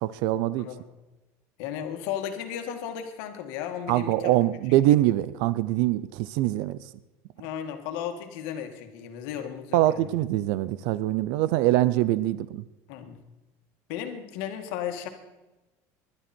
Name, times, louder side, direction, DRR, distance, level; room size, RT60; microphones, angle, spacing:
voice 1, 0.0-0.7 3.9-6.8 9.7-12.6, right 15 dB, 70° right, 16 dB, 0.6 m, -23 dB
voice 2, 1.6-4.3 4.7-4.8 7.4-10.1 12.9-13.2 13.9-15.1, left 9 dB, 75° left, 6 dB, 2.1 m, -35 dB
20.5 x 12.0 x 4.5 m, 1.1 s
cardioid pair, 140°, 8 cm